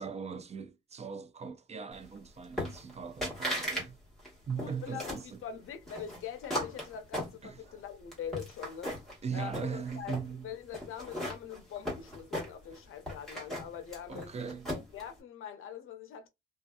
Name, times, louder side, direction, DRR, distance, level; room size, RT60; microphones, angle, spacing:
voice 1, 0.0-4.0 4.5-5.4 7.4-7.6 9.2-10.5 14.1-14.7, right 6 dB, 30° right, 0.3 m, -39 dB
sound 1, 2.6-2.9 3.2-3.9 4.2-5.3 5.9-7.7 8.1-9.2 9.5-10.3 10.7-12.8 13.1-15.0, equal, ahead, 1.3 m, -37 dB
voice 2, 4.6-8.9 9.3-10.2 10.4-14.4 14.7-16.3, left 8 dB, 80° left, 0.7 m, -43 dB
2.7 x 2.4 x 2.3 m
wide cardioid pair, 150°, 21 cm